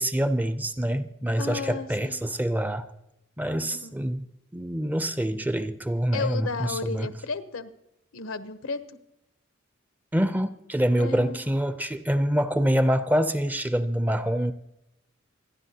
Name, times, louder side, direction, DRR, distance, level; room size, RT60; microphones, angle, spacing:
voice 1, 0.0-2.8 3.4-4.3 4.5-7.1 10.1-14.5, equal, 10° right, 0.4 m, -26 dB
voice 2, 1.4-2.3 3.7-3.9 6.1-7.7 8.1-9.0 11.0-11.4, left 4 dB, 90° left, 0.8 m, -33 dB
27.0 x 10.5 x 2.8 m
head